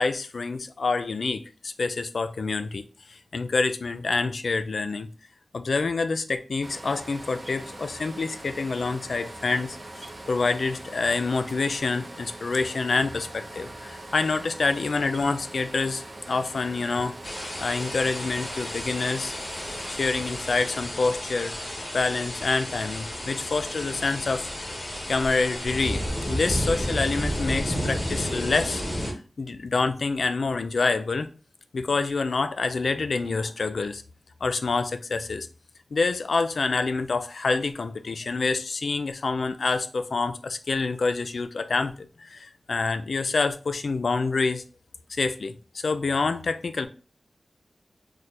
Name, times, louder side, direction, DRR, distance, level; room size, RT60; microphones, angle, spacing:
voice 1, 0.0-2.8 3.1-5.1 5.5-17.2 17.6-19.3 19.9-24.4 25.1-28.8 29.4-31.3 31.7-34.0 34.4-35.5 35.9-44.6 45.2-46.9, left 4 dB, 70° left, 0.3 m, -27 dB
sound 1, 6.6-20.9, right 1 dB, 40° right, 0.5 m, -42 dB
sound 2, 17.2-29.1, equal, 35° left, 1.2 m, -32 dB
3.1 x 2.1 x 4.2 m
wide cardioid pair, 100°, 0 cm